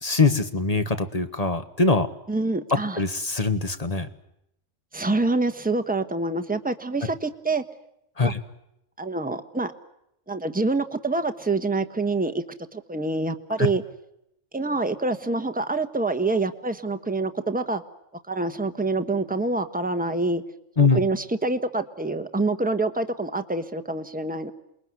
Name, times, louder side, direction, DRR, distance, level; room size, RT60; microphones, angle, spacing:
voice 1, 0.0-2.1 3.0-4.1 8.2-8.4 20.8-21.0, left 3 dB, 30° left, 9 dB, 1.5 m, -22 dB
voice 2, 2.3-3.0 4.9-7.6 8.2-8.3 9.0-9.7 10.3-12.4 12.7-13.8 14.5-17.8 18.3-20.4 20.8-24.5, right 3 dB, 5° right, 8 dB, 1.2 m, -26 dB
28.0 x 21.5 x 9.5 m, 0.80 s
omnidirectional pair, 1.2 m